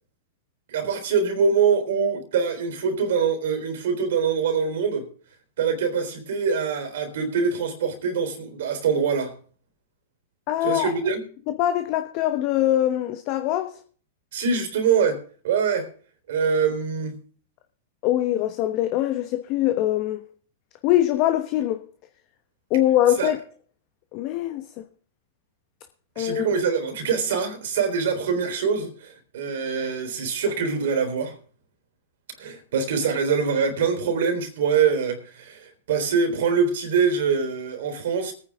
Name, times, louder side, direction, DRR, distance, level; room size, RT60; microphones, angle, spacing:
voice 1, 0.7-5.1 5.6-9.3 10.6-11.2 14.3-15.9 16.3-17.2 23.2-23.3 26.2-31.3 32.4-38.3, right 6 dB, 70° right, 3.7 m, -24 dB
voice 2, 10.5-10.9 11.5-13.8 18.0-20.2 20.8-21.8 22.7-23.4 24.1-24.8 26.2-26.4, left 13 dB, 45° left, 1.1 m, -23 dB
21.5 x 9.7 x 3.6 m
hypercardioid pair, 115°, 0 cm